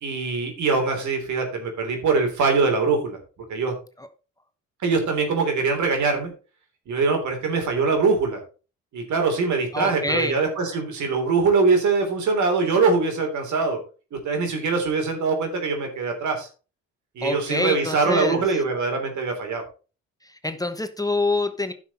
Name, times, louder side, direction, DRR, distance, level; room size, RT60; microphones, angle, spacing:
voice 1, 0.0-3.2 3.5-3.7 4.8-6.3 6.9-8.4 8.9-13.8 14.1-16.5 17.2-19.6, right 4 dB, 70° right, 4 dB, 3.4 m, -23 dB
voice 2, 9.7-10.3 17.2-18.4 20.4-21.7, left 2 dB, 10° left, 8 dB, 1.1 m, -25 dB
11.5 x 6.1 x 4.3 m, 0.35 s
cardioid pair, 90°, 30 cm